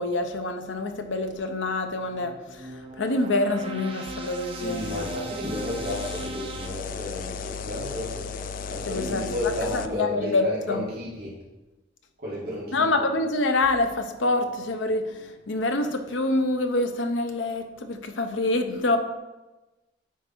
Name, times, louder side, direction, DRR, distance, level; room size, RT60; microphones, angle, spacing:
voice 1, 0.0-2.7 3.0-5.1 8.9-9.3 9.7-10.8 12.7-19.0, left 2 dB, 80° left, 7 dB, 0.7 m, -26 dB
sound 1, 1.8-6.7, right 2 dB, 30° right, 0.8 m, -38 dB
sound 2, 4.1-9.9, left 5 dB, 45° left, 0.3 m, -36 dB
voice 2, 4.5-11.3 12.2-12.9, left 1 dB, 55° right, -7 dB, 2.3 m, -32 dB
9.2 x 3.4 x 4.5 m, 1.1 s
head